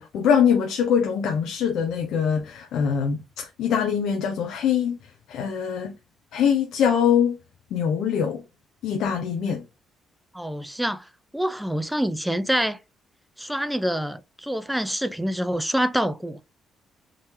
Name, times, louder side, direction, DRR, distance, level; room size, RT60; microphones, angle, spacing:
voice 1, 0.0-5.0 5.3-5.9 6.3-7.4 7.7-8.4 8.8-9.6, left 7 dB, 80° left, 0.6 m, -23 dB
voice 2, 10.3-12.8 13.4-16.4, equal, 5° right, 0.5 m, -26 dB
3.7 x 2.8 x 3.1 m
cardioid pair, 90°, 0 cm